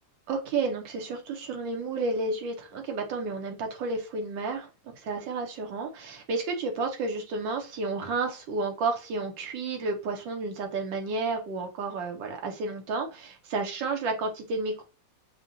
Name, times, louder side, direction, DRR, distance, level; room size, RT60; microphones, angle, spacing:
voice 1, 0.3-14.8, right 3 dB, 80° right, 1.5 m, -31 dB
5.5 x 2.1 x 2.6 m
omnidirectional pair, 2.0 m